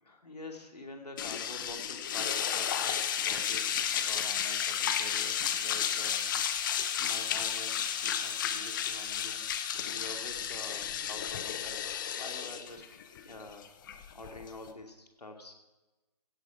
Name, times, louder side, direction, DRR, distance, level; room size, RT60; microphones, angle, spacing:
voice 1, 0.0-6.3 7.0-9.5 9.9-12.8 13.2-13.7 14.1-15.5, left 2 dB, 75° left, 3 dB, 2.5 m, -46 dB
sound 1, 1.2-14.7, left 9 dB, 30° left, 0.9 m, -32 dB
16.5 x 10.5 x 4.8 m, 1.1 s
figure-of-eight pair, 140°, 20 cm